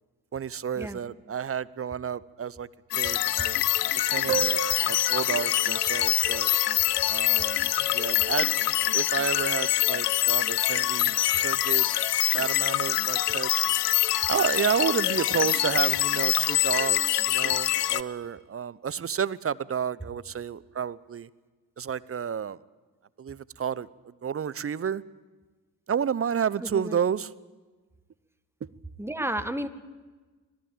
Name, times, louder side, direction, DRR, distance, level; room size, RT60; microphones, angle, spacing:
voice 1, 0.3-2.7 2.9-3.7 4.0-4.6 4.9-6.5 7.1-7.7 7.9-8.5 8.9-11.9 12.3-13.7 14.3-21.3 21.8-22.6 23.2-23.9 24.2-25.0 25.9-27.3, right 8 dB, 30° right, 19 dB, 0.9 m, -30 dB
sound 1, 2.9-18.0, left 15 dB, 90° left, 0.6 m, -25 dB
sound 2, 4.3-9.3, right 13 dB, 85° right, 1.7 m, -38 dB
voice 2, 26.6-27.0 29.0-29.7, right 1 dB, 5° right, 9 dB, 1.8 m, -32 dB
25.5 x 17.0 x 8.9 m, 1.3 s
hypercardioid pair, 45°, 46 cm